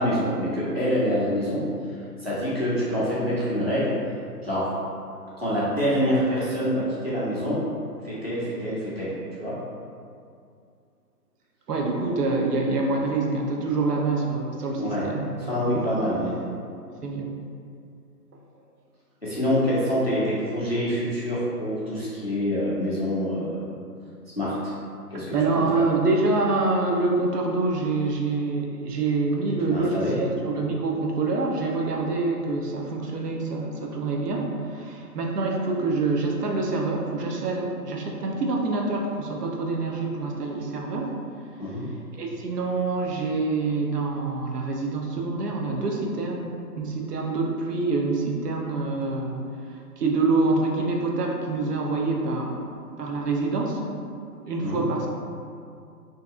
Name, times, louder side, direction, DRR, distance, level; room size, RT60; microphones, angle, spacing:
voice 1, 0.0-1.6 2.2-3.9 4.4-4.7 5.4-7.6 8.0-9.5 14.8-15.0 15.5-16.3 19.2-23.6 24.4-24.7 25.1-25.4 29.7-30.2 41.6-41.8 54.6-54.8, equal, 40° left, -9 dB, 0.4 m, -26 dB
voice 2, 11.7-15.3 15.7-15.8 17.0-17.3 25.1-41.2 42.2-49.4 50.0-55.1, right 3 dB, 70° right, 0 dB, 0.5 m, -26 dB
2.6 x 2.2 x 2.4 m, 2.4 s
hypercardioid pair, 180°, 49 cm